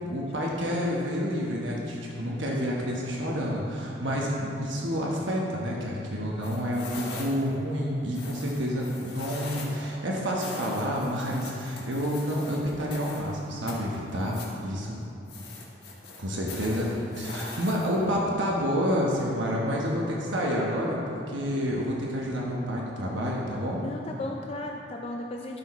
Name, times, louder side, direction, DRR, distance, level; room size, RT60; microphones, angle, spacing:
voice 1, 0.0-15.0 16.2-16.9 17.2-23.8, equal, 85° right, -3 dB, 1.1 m, -29 dB
sound 1, 6.4-7.5 8.1-9.9 10.4-13.3 13.7-14.6 15.3-18.1, left 3 dB, 60° left, 1.7 m, -42 dB
voice 2, 23.8-25.6, left 1 dB, 30° left, 1 dB, 0.4 m, -36 dB
11.5 x 6.2 x 4.1 m, 2.8 s
head